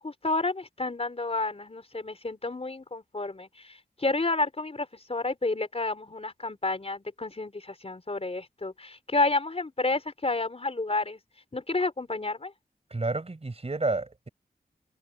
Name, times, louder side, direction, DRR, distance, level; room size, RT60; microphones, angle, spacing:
voice 1, 0.0-11.2 11.5-12.5, left 2 dB, 40° left, 4.2 m, -30 dB
voice 2, 12.9-14.3, right 3 dB, 40° right, 4.9 m, -30 dB
open air
wide cardioid pair, 90°, 17 cm